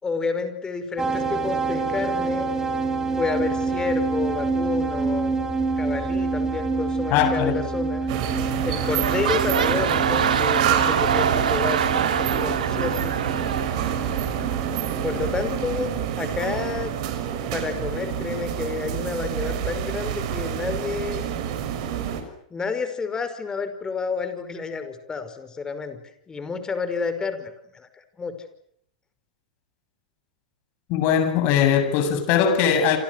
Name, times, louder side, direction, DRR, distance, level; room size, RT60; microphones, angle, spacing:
voice 1, 0.0-2.5 3.2-5.4 5.8-8.1 8.6-13.2 15.0-16.9 17.5-21.3 22.5-26.0 26.3-28.4, left 5 dB, 15° left, 5.3 m, -30 dB
sound 1, 1.0-15.9, right 4 dB, 10° right, 5.7 m, -28 dB
voice 2, 7.1-7.7 30.9-33.0, left 8 dB, 50° left, 7.7 m, -20 dB
sound 2, 8.1-22.2, right 10 dB, 60° right, 6.0 m, -28 dB
sound 3, 8.3-8.4 8.7-14.5 15.2-15.3, right 8 dB, 85° right, 3.0 m, -25 dB
28.0 x 28.0 x 6.6 m
hypercardioid pair, 110°, 4 cm